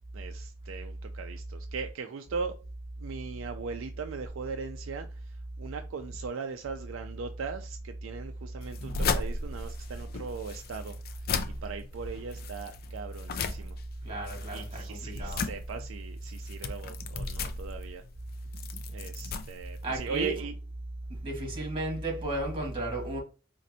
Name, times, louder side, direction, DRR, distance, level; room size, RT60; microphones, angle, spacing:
voice 1, 0.1-2.5 3.0-11.2 11.6-13.8 14.5-18.0 18.9-20.5, right 5 dB, 80° right, 0.4 m, -39 dB
sound 1, 8.6-20.3, left 4 dB, 50° left, 0.4 m, -36 dB
voice 2, 14.0-15.4 19.8-20.3 21.1-23.2, right 1 dB, 25° right, 1.5 m, -34 dB
4.2 x 2.5 x 2.6 m
head